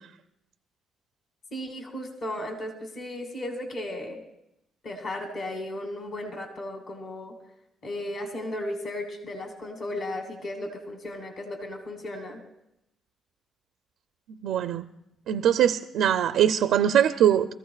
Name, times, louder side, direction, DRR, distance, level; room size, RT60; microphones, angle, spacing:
voice 1, 1.5-4.2 4.8-7.4 7.8-12.4, left 1 dB, 50° left, 4 dB, 2.2 m, -35 dB
voice 2, 14.4-14.9 15.3-17.5, right 10 dB, 80° right, 8 dB, 0.4 m, -22 dB
23.5 x 14.5 x 2.4 m, 0.84 s
cardioid pair, 90°, 0 cm